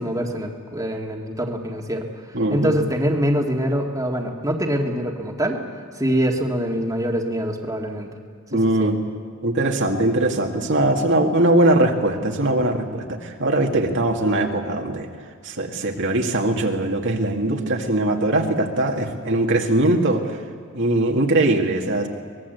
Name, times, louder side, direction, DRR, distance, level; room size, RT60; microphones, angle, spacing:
voice 1, 0.0-2.0 2.5-5.6 6.0-8.1 8.5-8.9, equal, 15° right, 1 dB, 2.1 m, -24 dB
voice 2, 2.3-2.7 8.5-9.0 9.4-15.1 15.4-20.4 20.7-22.1, right 1 dB, 60° right, 2 dB, 2.1 m, -21 dB
24.0 x 20.5 x 8.1 m, 2.1 s
head